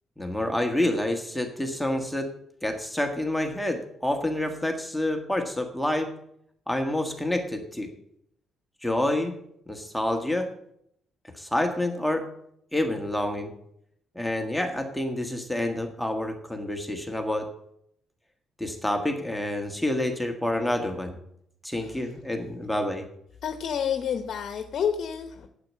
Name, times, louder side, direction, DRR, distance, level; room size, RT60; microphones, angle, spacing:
voice 1, 0.2-2.3 2.6-6.1 6.7-7.9 8.8-9.4 9.7-10.5 11.4-12.2 12.7-13.5 14.2-17.5 18.6-21.1 21.6-23.1, left 1 dB, ahead, 3 dB, 1.6 m, -28 dB
voice 2, 23.4-25.5, left 8 dB, 60° left, 7 dB, 0.9 m, -29 dB
8.9 x 8.3 x 7.5 m, 0.72 s
cardioid pair, 90°, 0 cm